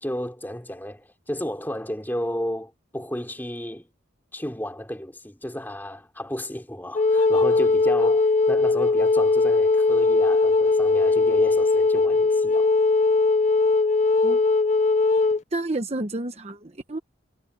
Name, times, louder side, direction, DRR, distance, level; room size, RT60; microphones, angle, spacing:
voice 1, 0.0-3.9 4.3-12.7, equal, 10° left, 3.1 m, -33 dB
Wind instrument woodwind instrument, 6.9-15.4, left 3 dB, 35° left, 0.4 m, -20 dB
voice 2, 15.5-17.0, right 2 dB, 35° right, 1.0 m, -30 dB
head